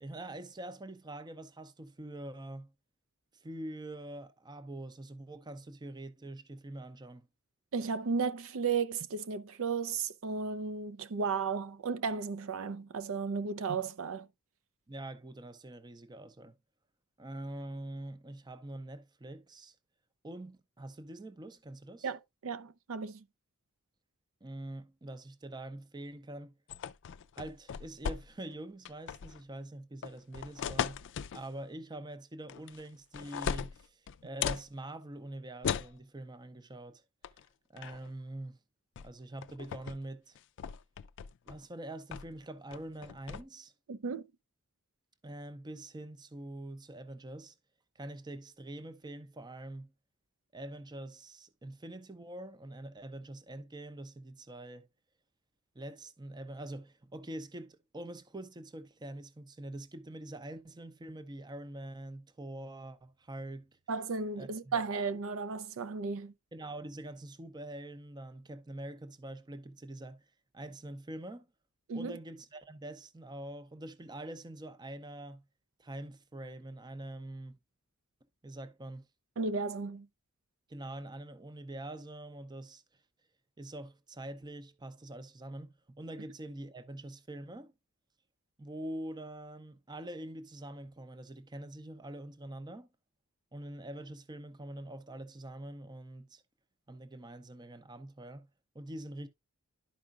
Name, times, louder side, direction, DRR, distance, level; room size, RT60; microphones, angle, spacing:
voice 1, 0.0-2.7 3.3-7.3 14.9-16.5 17.2-19.8 20.2-22.1 24.4-26.5 27.4-37.0 37.7-38.6 39.0-40.4 41.5-43.7 45.2-47.5 48.0-49.9 50.5-54.9 55.7-63.7 64.4-64.8 66.5-70.3 70.5-71.5 71.9-75.4 75.8-77.6 78.4-79.1 80.7-82.8 83.6-87.7 88.6-92.9 93.5-96.4 96.9-98.5 98.7-99.3, right 1 dB, 20° right, 0.6 m, -45 dB
voice 2, 7.7-14.3 22.0-23.2 43.9-44.3 63.9-66.3 71.9-72.2 79.4-80.1, right 5 dB, 65° right, 0.5 m, -34 dB
sound 1, 26.7-28.5 28.8-29.4 30.0-31.4 32.5-32.9 33.1-34.7 35.6-36.0 37.2-37.4 37.8-38.1 39.0-39.1 39.4-40.0 40.3-41.6 42.1-42.4 42.7-43.4, left 7 dB, 55° left, 0.4 m, -37 dB
11.5 x 4.9 x 2.4 m
head